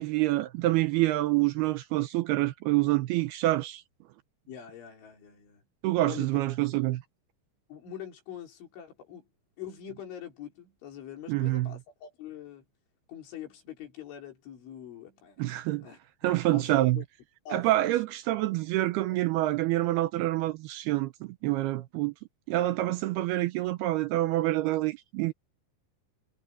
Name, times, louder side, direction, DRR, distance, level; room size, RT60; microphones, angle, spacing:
voice 1, 0.0-3.8 5.8-7.0 11.3-11.7 15.4-15.8 16.2-17.0 17.5-22.1 22.5-25.3, right 17 dB, 85° right, 2.3 m, -27 dB
voice 2, 4.5-5.6 6.1-6.3 7.7-9.3 9.6-12.6 13.1-16.0 16.5-17.0 17.5-18.0 19.1-19.2, left 9 dB, 75° left, 6.5 m, -44 dB
omnidirectional pair, 5.5 m